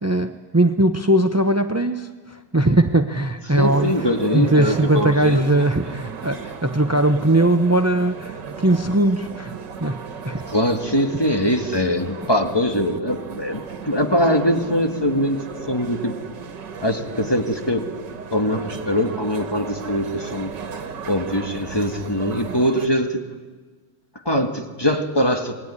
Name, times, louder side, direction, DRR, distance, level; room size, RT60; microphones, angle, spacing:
voice 1, 0.0-3.9 4.3-9.5 9.8-10.4, right 1 dB, 20° right, 8 dB, 0.4 m, -20 dB
voice 2, 3.5-5.4 10.5-15.4 15.7-16.1 16.8-17.9 18.3-20.5 21.1-23.2 24.3-25.5, equal, 15° left, 5 dB, 1.9 m, -22 dB
sound 1, 3.6-22.9, right 6 dB, 85° right, 2.2 m, -36 dB
26.5 x 20.5 x 9.9 m, 1.4 s
omnidirectional pair, 1.8 m